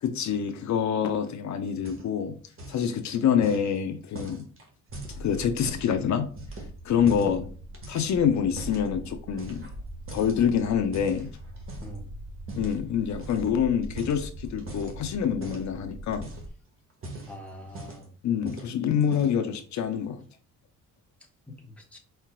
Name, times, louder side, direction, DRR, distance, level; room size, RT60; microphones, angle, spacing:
voice 1, 0.0-2.4 2.7-4.4 5.2-6.3 6.8-7.5 7.9-9.6 10.1-11.3 12.6-16.3 18.2-20.2, left 8 dB, 60° left, 7 dB, 0.6 m, -26 dB
sound 1, 1.7-2.3 2.5-2.9 3.4-6.0 6.4-7.4 7.7-8.9 9.4-9.8 10.1-12.0 12.5-12.8 13.2-13.5 13.8-15.0 15.4-15.7 16.1-16.6 16.9-18.1 18.5-18.7 19.0-19.5, right 2 dB, 40° right, 1.5 m, -42 dB
sound 2, 4.9-16.5, right 1 dB, 60° right, 1.1 m, -42 dB
voice 2, 7.1-7.4 11.8-12.1 17.3-18.1 21.5-22.0, equal, 5° left, 0 dB, 1.1 m, -42 dB
4.8 x 4.4 x 2.2 m, 0.42 s
cardioid pair, 140°, 32 cm